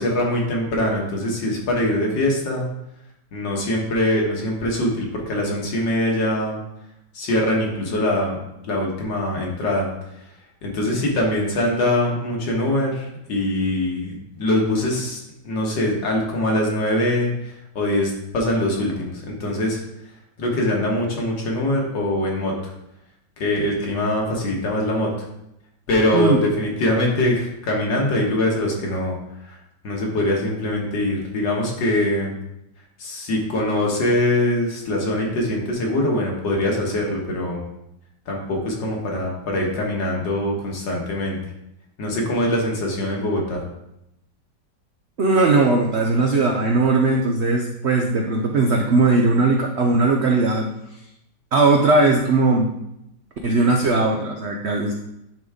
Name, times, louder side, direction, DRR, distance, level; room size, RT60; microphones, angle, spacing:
voice 1, 0.0-2.7 3.3-6.6 7.1-8.4 8.7-9.9 10.6-15.2 15.4-19.8 20.4-22.7 23.4-25.1 25.9-29.2 29.4-29.6 29.8-32.4 33.0-37.6 38.3-41.4 42.0-43.6, left 1 dB, 70° left, -1 dB, 2.1 m, -23 dB
voice 2, 45.2-50.7 51.5-52.7 53.4-54.9, right 3 dB, 85° right, 1 dB, 0.5 m, -18 dB
10.5 x 3.8 x 3.6 m, 0.83 s
omnidirectional pair, 2.1 m